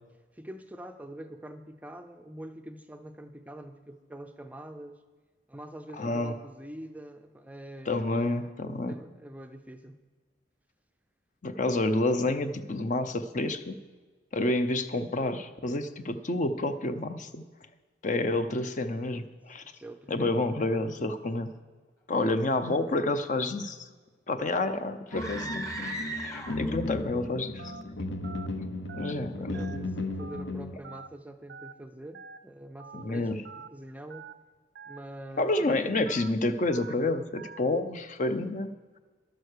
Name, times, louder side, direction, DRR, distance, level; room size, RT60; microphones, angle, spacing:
voice 1, 0.3-5.0 5.5-8.3 8.8-10.0 19.7-20.4 29.2-34.3 34.9-35.9, right 1 dB, 10° right, 7 dB, 0.5 m, -45 dB
voice 2, 6.0-6.3 7.9-8.9 11.4-13.8 14.3-17.5 18.0-19.6 20.1-21.5 22.1-23.9 24.3-27.7 28.9-29.5 32.9-33.4 35.4-38.7, left 2 dB, 40° left, 9 dB, 0.7 m, -29 dB
sound 1, 25.1-30.8, left 2 dB, 75° left, 0.8 m, -35 dB
sound 2, 25.1-26.9, right 1 dB, 15° left, 1.2 m, -37 dB
Telephone, 27.6-27.8 28.2-28.5 28.9-29.1 29.5-29.8 30.2-30.4 30.8-31.1 31.5-31.7 32.1-32.4 32.8-33.0 33.4-33.7 34.1-34.3 34.7-35.0 35.4-35.6 36.1-36.3 36.7-36.9 37.4-37.6, right 5 dB, 60° right, 0.4 m, -45 dB
12.0 x 9.1 x 6.6 m, 1.4 s
head